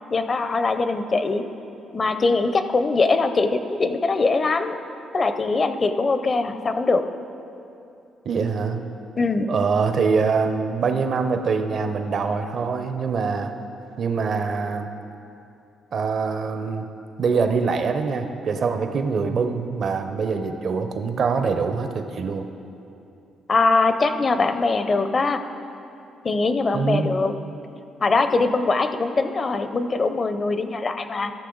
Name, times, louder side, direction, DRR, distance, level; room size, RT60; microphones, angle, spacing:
voice 1, 0.1-1.4 1.9-4.8 5.1-7.0 9.2-9.5 23.5-25.4 26.2-27.3 28.0-31.3, left 3 dB, 35° left, 9 dB, 0.6 m, -22 dB
voice 2, 8.2-8.8 9.5-13.5 14.0-14.9 15.9-16.9 17.2-22.5 26.7-27.1, right 5 dB, 55° right, 7 dB, 0.7 m, -24 dB
14.5 x 6.6 x 3.9 m, 2.7 s
cardioid pair, 90°, 0 cm